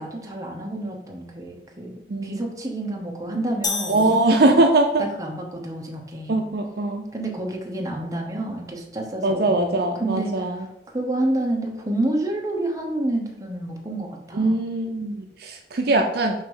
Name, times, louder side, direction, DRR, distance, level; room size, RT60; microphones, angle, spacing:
voice 1, 0.0-1.9 2.2-4.5 5.0-6.5 7.1-9.6 10.0-10.7 10.9-14.6, right 1 dB, 20° right, 0 dB, 1.1 m, -29 dB
voice 2, 2.1-2.5 3.9-5.0 6.3-7.1 9.2-10.6 14.3-16.3, right 2 dB, 60° right, 4 dB, 0.5 m, -21 dB
sound 1, 3.6-5.0, left 4 dB, 20° left, 0.6 m, -31 dB
6.5 x 2.9 x 5.5 m, 0.85 s
head